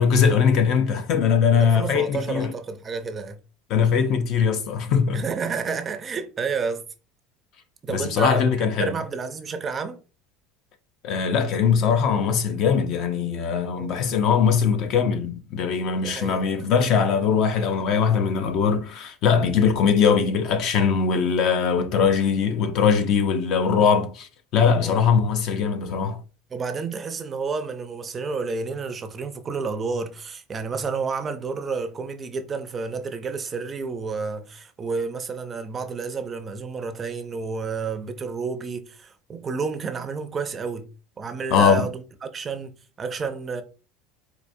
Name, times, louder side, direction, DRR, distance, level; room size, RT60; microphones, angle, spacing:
voice 1, 0.0-2.5 3.7-5.3 7.9-9.0 11.0-26.2 41.5-41.9, left 6 dB, 50° left, 0.6 m, -21 dB
voice 2, 1.6-3.4 5.1-6.8 7.8-8.5 8.8-10.0 13.7-14.0 16.0-16.7 24.8-25.0 26.5-40.9 41.2-42.7 43.0-43.6, right 5 dB, 25° right, 0.5 m, -30 dB
4.7 x 2.5 x 2.6 m
cardioid pair, 140°, 0 cm